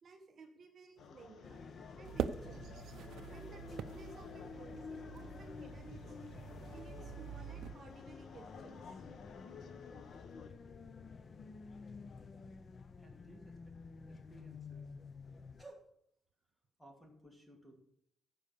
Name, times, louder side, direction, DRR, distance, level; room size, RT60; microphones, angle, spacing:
voice 1, 0.0-1.6 2.0-2.7 3.3-6.2 6.7-9.1, right 4 dB, 40° right, 3 dB, 1.1 m, -57 dB
sound 1, 1.0-10.5, left 5 dB, 60° left, 1.1 m, -54 dB
sound 2, 1.4-15.6, left 5 dB, 30° left, 0.6 m, -51 dB
sound 3, 2.0-7.7, right 8 dB, 65° right, 0.6 m, -44 dB
voice 2, 13.0-13.8 14.1-14.9 15.6-15.9 16.8-17.7, right 1 dB, 5° left, 1 dB, 2.5 m, -57 dB
15.0 x 5.3 x 6.8 m, 0.70 s
cardioid pair, 170°, 0 cm